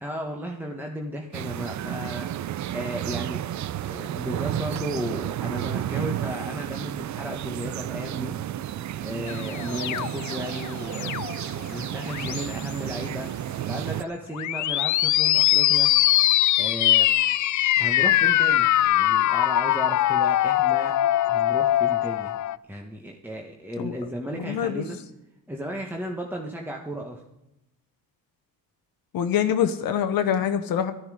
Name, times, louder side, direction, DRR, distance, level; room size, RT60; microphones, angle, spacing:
voice 1, 0.0-3.4 3.9-8.3 9.0-11.3 11.5-15.9 16.6-17.1 17.8-21.0 21.3-22.4 22.7-25.0 25.5-27.2, equal, 5° right, 1 dB, 1.3 m, -35 dB
sound 1, 1.3-14.0, right 12 dB, 50° right, 0.5 m, -32 dB
sound 2, 9.3-11.5 12.0-12.7 14.3-22.6, left 13 dB, 55° left, 0.5 m, -22 dB
voice 2, 24.4-24.8 29.1-30.9, left 9 dB, 70° left, 7 dB, 1.0 m, -24 dB
13.5 x 12.5 x 5.0 m, 0.88 s
cardioid pair, 95°, 36 cm